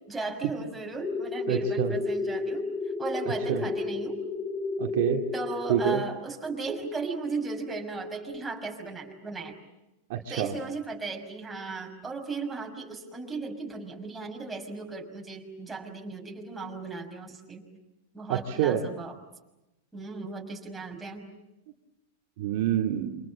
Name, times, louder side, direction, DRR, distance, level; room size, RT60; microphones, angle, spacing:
voice 1, 0.1-2.7 3.0-4.2 5.3-9.6 10.3-17.6 18.1-19.2 19.9-21.3, right 3 dB, 10° right, 1 dB, 5.7 m, -36 dB
sound 1, 1.0-6.0, left 3 dB, 20° left, 2.6 m, -31 dB
voice 2, 1.5-1.9 3.5-3.6 4.8-5.2 5.7-6.0 10.1-10.5 18.3-18.8 22.4-23.2, right 11 dB, 60° right, 2 dB, 2.3 m, -27 dB
28.5 x 26.0 x 7.5 m, 0.96 s
hypercardioid pair, 105°, 0 cm